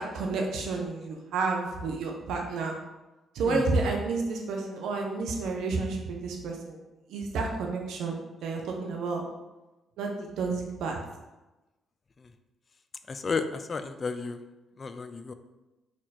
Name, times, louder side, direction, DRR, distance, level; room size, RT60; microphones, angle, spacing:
voice 1, 0.0-2.8 3.3-6.8 7.1-9.2 10.0-11.0, right 3 dB, 80° right, 1 dB, 0.7 m, -30 dB
voice 2, 13.1-14.4 14.8-15.3, left 4 dB, 35° left, 10 dB, 0.3 m, -33 dB
4.4 x 2.3 x 4.1 m, 1.0 s
cardioid pair, 90°, 0 cm